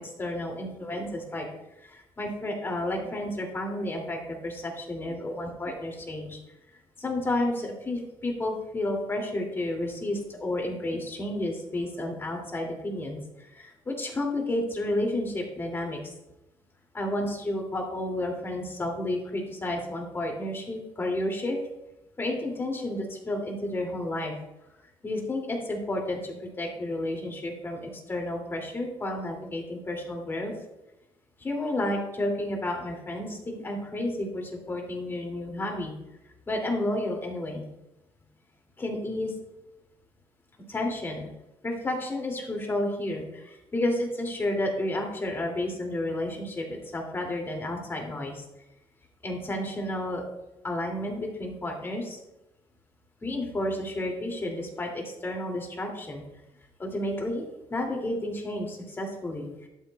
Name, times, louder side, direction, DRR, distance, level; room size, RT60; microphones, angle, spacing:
voice 1, 0.0-1.5 1.8-6.4 7.0-16.0 16.9-21.6 22.2-24.3 25.0-30.5 31.4-35.9 36.5-37.6 38.8-39.3 40.7-41.3 41.6-48.4 49.2-50.2 50.6-52.2 53.2-56.2 56.8-57.4 57.7-59.7, left 1 dB, 25° left, 1 dB, 2.4 m, -31 dB
11.5 x 11.5 x 2.3 m, 0.94 s
cardioid pair, 145°, 10 cm